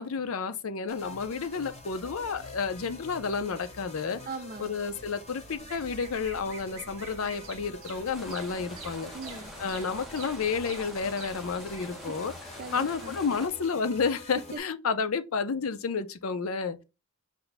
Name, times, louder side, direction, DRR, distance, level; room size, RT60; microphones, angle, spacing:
voice 1, 0.0-4.2 4.6-9.1 9.6-12.3 12.7-16.8, left 5 dB, 75° left, 0.6 m, -31 dB
sound 1, 0.9-14.6, left 2 dB, 30° left, 1.0 m, -47 dB
voice 2, 4.3-4.7 9.1-9.5 12.6-13.2 14.5-14.6, right 4 dB, 40° right, 0.4 m, -39 dB
Bird vocalization bird call bird song, 5.5-11.9, right 5 dB, 65° right, 0.8 m, -48 dB
sound 2, 8.1-13.5, equal, ahead, 0.7 m, -46 dB
5.7 x 2.2 x 4.0 m
head